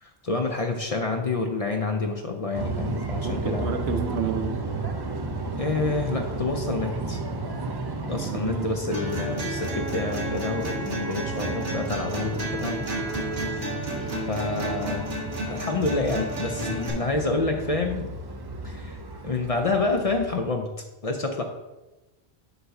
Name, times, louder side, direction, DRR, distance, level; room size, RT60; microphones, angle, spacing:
voice 1, 0.0-3.7 5.6-7.2 8.1-12.9 13.3-13.6 14.3-15.1 15.5-18.1 18.6-19.0 19.2-20.7 21.0-21.4, left 3 dB, 45° left, 0.5 m, -28 dB
sound 1, 2.5-20.3, right 2 dB, 40° right, 0.4 m, -33 dB
voice 2, 3.2-4.7 8.2-8.7 13.9-14.2, right 6 dB, 90° right, 1.0 m, -31 dB
sound 2, 8.9-16.9, right 1 dB, 70° right, 1.6 m, -32 dB
8.0 x 2.7 x 5.7 m
omnidirectional pair, 1.1 m